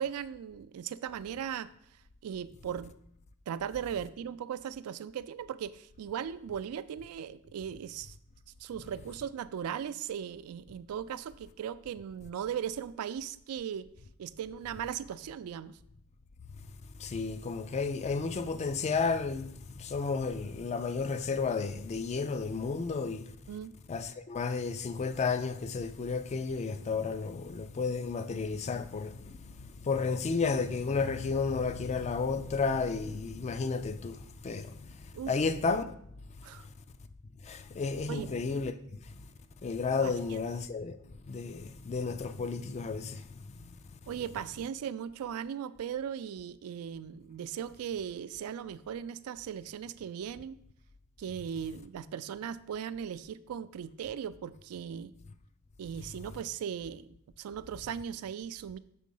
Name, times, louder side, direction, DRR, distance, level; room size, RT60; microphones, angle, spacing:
voice 1, 0.0-1.7 2.2-2.9 3.5-8.2 8.6-13.9 14.2-15.8 23.5-23.7 35.1-35.3 36.4-36.7 38.1-38.3 40.0-40.4 44.1-50.6 51.2-55.1 55.8-57.1 57.4-58.8, right 8 dB, 75° right, 0.3 m, -38 dB
voice 2, 17.0-19.5 19.8-23.3 23.9-29.4 29.9-34.2 34.4-34.7 35.3-35.8 37.5-38.7 39.6-40.9 41.3-43.2, left 4 dB, 30° left, 0.3 m, -32 dB
6.2 x 3.7 x 5.4 m
head